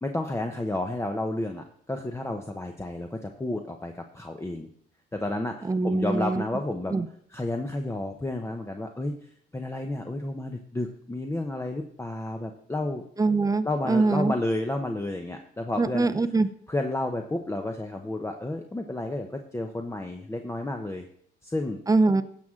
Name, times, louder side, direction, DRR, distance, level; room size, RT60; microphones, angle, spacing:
voice 1, 0.0-4.7 5.1-6.9 7.3-9.2 9.5-13.0 13.6-16.1 16.7-21.1 21.4-21.8, left 2 dB, 15° left, 4 dB, 0.8 m, -31 dB
voice 2, 5.7-6.4 6.9-7.1 13.2-14.3 15.8-16.5 21.9-22.2, right 3 dB, 15° right, 11 dB, 0.7 m, -23 dB
16.0 x 6.1 x 3.7 m, 0.65 s
cardioid pair, 90°, 20 cm